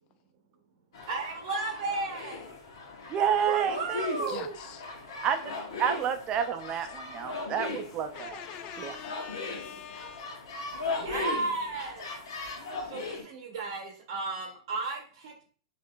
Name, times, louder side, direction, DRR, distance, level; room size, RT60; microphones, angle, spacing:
sound 1, 0.9-13.2, left 3 dB, 75° left, 1.0 m, -38 dB
voice 1, 1.1-2.4 3.5-4.6 11.0-12.1 12.8-15.5, right 3 dB, 60° right, 2 dB, 0.7 m, -34 dB
voice 2, 3.1-4.3 5.2-5.4 5.8-8.4 8.8-9.0, right 8 dB, 30° right, 8 dB, 0.5 m, -29 dB
voice 3, 4.3-4.8 6.8-6.9 8.1-10.4, left 9 dB, 35° left, 9 dB, 0.4 m, -44 dB
4.8 x 2.5 x 2.2 m, 0.42 s
hypercardioid pair, 140°, 3 cm